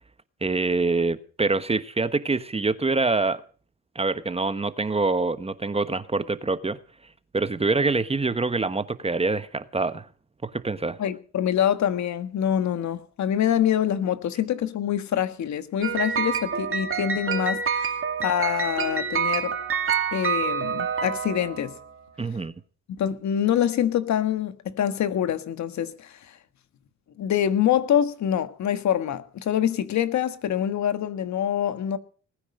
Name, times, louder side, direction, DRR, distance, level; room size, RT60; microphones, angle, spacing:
voice 1, 0.4-3.4 3.9-6.8 7.3-10.1 10.4-11.0 22.2-22.5, right 3 dB, 20° right, 1.2 m, -25 dB
voice 2, 11.0-17.9 18.2-19.5 20.1-21.7 23.0-26.2 27.2-32.0, left 10 dB, 65° left, 1.5 m, -25 dB
sound 1, 15.8-21.8, right 6 dB, 45° right, 2.5 m, -27 dB
19.5 x 9.6 x 6.5 m
cardioid pair, 90°, 30 cm